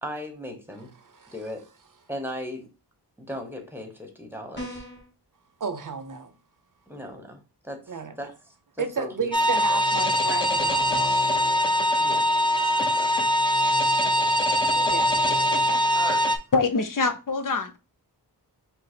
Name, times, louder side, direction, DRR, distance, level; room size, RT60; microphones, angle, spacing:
voice 1, 0.0-0.9 1.3-1.7 2.1-2.7 3.2-4.8 6.9-8.3 8.8-9.2 9.7-9.8 10.3-10.4 12.0-12.3 13.0-13.2 14.0-14.3 14.8-15.1 15.9-16.2, equal, 5° right, 1.0 m, -37 dB
sound 1, 4.5-5.1, equal, 30° left, 1.7 m, -37 dB
voice 2, 5.6-6.3 7.9-8.2 8.8-11.2 14.2-14.3 14.9-15.1 15.5-16.0, right 6 dB, 50° right, 0.6 m, -33 dB
sound 2, 9.3-16.4, left 1 dB, 10° left, 0.6 m, -22 dB
voice 3, 16.5-17.8, left 4 dB, 55° left, 0.6 m, -24 dB
5.2 x 2.0 x 4.3 m
wide cardioid pair, 95°, 39 cm